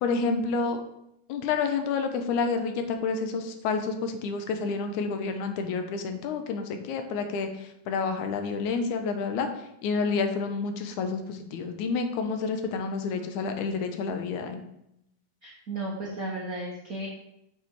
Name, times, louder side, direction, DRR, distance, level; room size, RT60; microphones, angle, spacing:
voice 1, 0.0-0.8 1.3-9.5 9.8-14.6, left 4 dB, 80° left, 6 dB, 2.1 m, -29 dB
voice 2, 15.4-17.1, right 2 dB, 85° right, -3 dB, 0.7 m, -34 dB
6.9 x 4.9 x 4.6 m, 0.80 s
omnidirectional pair, 3.5 m